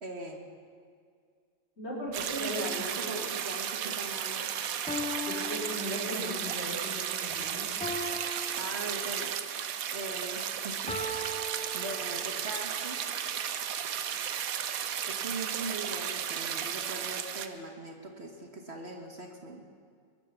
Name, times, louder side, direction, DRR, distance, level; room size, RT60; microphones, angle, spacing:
voice 1, 0.0-0.4 2.3-4.5 8.6-9.3 9.9-11.3 11.7-13.0 15.0-19.6, right 2 dB, 50° right, 3 dB, 1.5 m, -40 dB
voice 2, 1.8-3.2 5.2-7.7, equal, 50° left, -5 dB, 4.5 m, -38 dB
sound 1, 2.1-17.5, right 9 dB, 85° right, 1.2 m, -34 dB
sound 2, 4.1-4.2 4.9-6.5 7.8-9.4 10.9-12.5, left 1 dB, 5° left, 1.0 m, -39 dB
22.0 x 8.8 x 7.1 m, 2.1 s
omnidirectional pair, 1.4 m